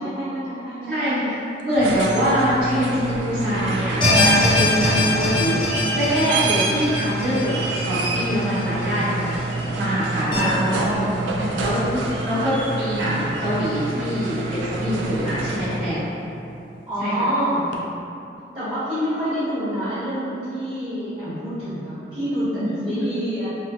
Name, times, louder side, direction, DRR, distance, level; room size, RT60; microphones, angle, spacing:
voice 1, 0.0-1.3 10.3-11.2 12.3-12.5 16.8-17.6 18.5-23.5, equal, 25° right, -19 dB, 1.3 m, -27 dB
voice 2, 0.9-5.6 5.9-10.5 11.4-16.1 17.0-17.1 22.5-23.1, equal, 65° right, -14 dB, 1.4 m, -24 dB
sound 1, 1.6-16.0 17.7-17.8, right 3 dB, 90° right, 0.3 m, -28 dB
sound 2, 4.0-9.2 9.6-9.7 10.3-10.4, left 2 dB, 25° left, 0.6 m, -22 dB
3.0 x 2.3 x 2.5 m, 2.8 s
head